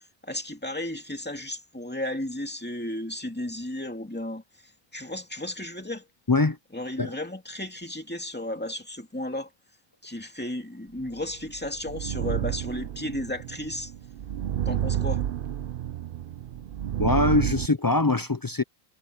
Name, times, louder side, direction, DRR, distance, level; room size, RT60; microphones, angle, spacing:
voice 1, 0.0-4.4 4.9-6.0 6.7-9.5 10.0-13.9 14.7-15.2 15.6-15.8, left 1 dB, 10° left, 2.3 m, -34 dB
sound 1, 11.2-17.7, right 11 dB, 60° right, 0.7 m, -30 dB
voice 2, 17.0-18.6, left 2 dB, 30° left, 0.4 m, -23 dB
omnidirectional pair, 1.1 m